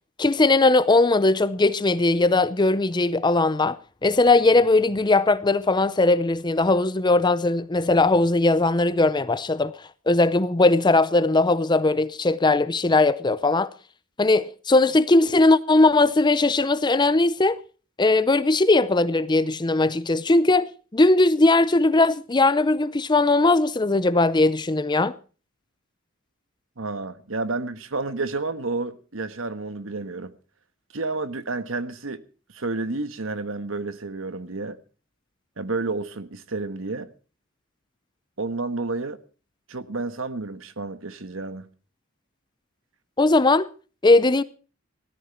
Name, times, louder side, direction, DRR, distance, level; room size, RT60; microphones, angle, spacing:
voice 1, 0.2-3.8 4.0-9.7 10.1-13.7 14.2-17.6 18.0-20.7 20.9-25.1 43.2-43.7 44.0-44.4, left 2 dB, 20° left, 0.6 m, -19 dB
voice 2, 26.8-30.3 30.9-32.2 32.5-34.8 35.6-37.1 38.4-39.2 39.7-41.7, right 3 dB, 70° right, 1.4 m, -30 dB
17.5 x 13.5 x 4.5 m
head